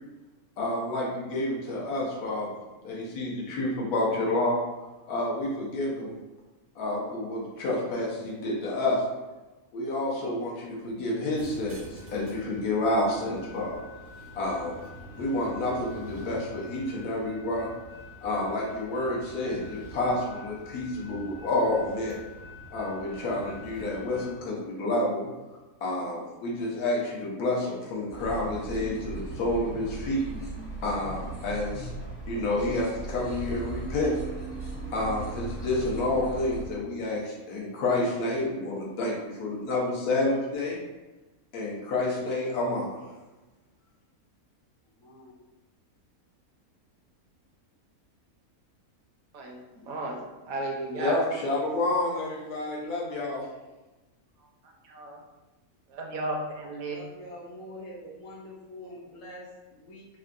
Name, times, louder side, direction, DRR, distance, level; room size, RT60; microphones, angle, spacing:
voice 1, 0.6-2.5 2.8-4.6 5.1-6.1 6.8-9.0 9.7-13.8 14.3-14.8 15.2-17.7 18.2-22.2 22.7-25.3 25.8-30.2 30.8-31.9 32.3-34.1 34.9-40.8 41.5-43.1 51.0-53.4, left 2 dB, 85° left, -3 dB, 1.2 m, -29 dB
sound 1, 11.4-24.3, left 1 dB, 55° right, 0.6 m, -46 dB
sound 2, 28.1-36.6, right 2 dB, 15° left, 0.5 m, -37 dB
voice 2, 45.0-45.3 56.7-60.1, left 1 dB, 65° left, -3 dB, 1.1 m, -45 dB
voice 3, 49.3-51.2 54.8-55.2 55.9-57.0, right 2 dB, 70° right, 0 dB, 1.0 m, -34 dB
3.6 x 2.2 x 2.4 m, 1.1 s
omnidirectional pair, 1.6 m